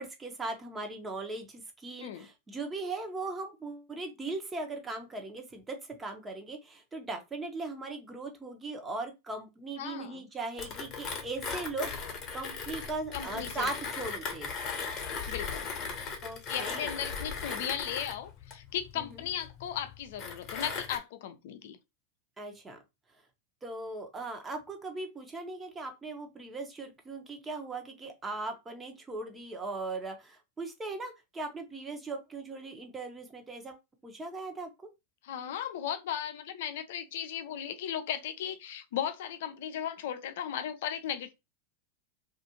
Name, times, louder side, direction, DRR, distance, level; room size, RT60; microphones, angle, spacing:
voice 1, 0.0-14.5 16.2-16.9 18.9-19.2 22.4-22.8 23.6-33.8 34.0-34.7, right 3 dB, 20° right, 0.9 m, -39 dB
voice 2, 9.8-10.3 13.1-13.7 15.3-15.7 16.5-21.8 35.2-41.3, left 9 dB, 70° left, 0.5 m, -36 dB
Mechanisms, 10.6-21.0, left 5 dB, 40° left, 1.0 m, -38 dB
2.5 x 2.5 x 2.8 m
hypercardioid pair, 100°, 0 cm